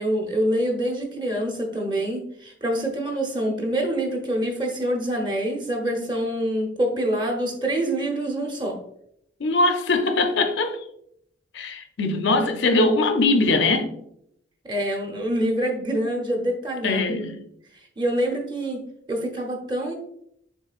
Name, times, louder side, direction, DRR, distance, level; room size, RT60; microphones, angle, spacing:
voice 1, 0.0-8.8 14.6-17.3 17.7-19.9, right 1 dB, 25° right, 0.8 m, -26 dB
voice 2, 9.4-10.8 11.5-13.9 16.8-17.4, left 2 dB, 65° left, 0.5 m, -21 dB
6.5 x 3.2 x 2.4 m
head